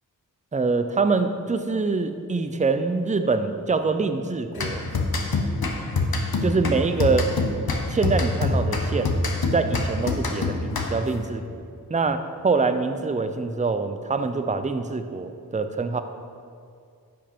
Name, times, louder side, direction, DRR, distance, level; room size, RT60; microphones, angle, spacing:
voice 1, 0.5-4.8 6.2-7.3 7.9-9.1 9.5-11.4 11.9-16.0, right 4 dB, 20° right, 8 dB, 0.5 m, -24 dB
sound 1, 4.6-11.2, left 3 dB, 70° left, 0.9 m, -26 dB
9.9 x 5.4 x 4.4 m, 2.3 s
wide cardioid pair, 40°, 38 cm